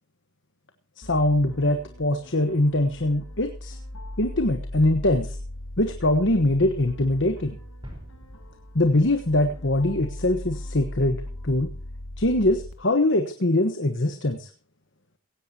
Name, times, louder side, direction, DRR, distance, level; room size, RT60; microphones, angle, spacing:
sound 1, 1.0-12.7, left 1 dB, 70° left, 2.3 m, -39 dB
voice 1, 1.0-3.8 4.2-5.4 5.8-7.6 8.7-11.7 12.2-14.5, left 1 dB, 55° left, 7 dB, 1.3 m, -23 dB
sound 2, 7.8-10.3, equal, 20° right, 4.4 m, -47 dB
17.0 x 16.0 x 2.9 m, 0.37 s
head